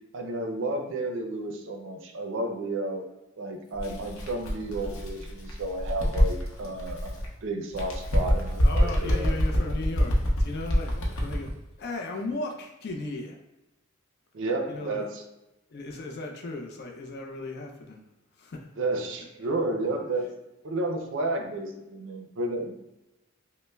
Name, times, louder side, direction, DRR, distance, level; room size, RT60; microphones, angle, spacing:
voice 1, 0.1-3.0 3.4-9.3 9.7-9.8 14.3-15.2 18.8-20.3 20.6-22.8, right 2 dB, 60° right, 4 dB, 0.5 m, -32 dB
Bird, 3.7-7.3 7.7-11.5, equal, 80° left, 0.7 m, -26 dB
voice 2, 8.6-13.4 14.7-15.1 15.7-18.1 18.4-18.7, left 2 dB, 50° left, 2 dB, 0.4 m, -36 dB
5.3 x 2.0 x 2.2 m, 0.95 s
head